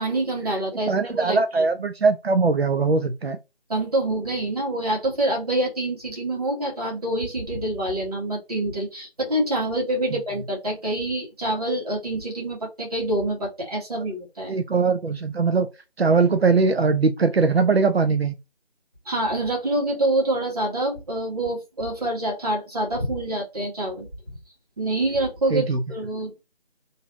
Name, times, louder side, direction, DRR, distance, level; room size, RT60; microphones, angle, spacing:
voice 1, 0.0-1.9 3.7-14.6 19.1-24.1 24.8-26.4, right 1 dB, 40° right, 1.8 m, -26 dB
voice 2, 0.9-3.4 14.5-15.7 16.0-18.3 25.5-25.8, right 4 dB, 85° right, 0.7 m, -21 dB
4.3 x 3.3 x 2.5 m
figure-of-eight pair, 160°, 30 cm